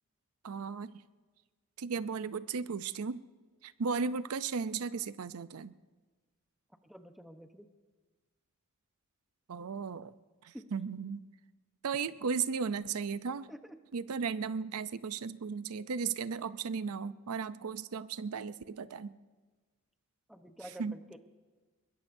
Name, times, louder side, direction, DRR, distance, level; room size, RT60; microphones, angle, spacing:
voice 1, 0.4-1.0 1.8-3.2 3.6-5.7 9.5-10.1 10.4-11.2 11.8-13.5 13.9-19.1 20.8-21.0, right 5 dB, 80° right, 15 dB, 0.5 m, -35 dB
voice 2, 6.8-7.7 10.5-10.7 13.5-13.8 20.3-21.2, equal, ahead, 6 dB, 0.9 m, -49 dB
22.5 x 21.0 x 2.7 m, 1.3 s
head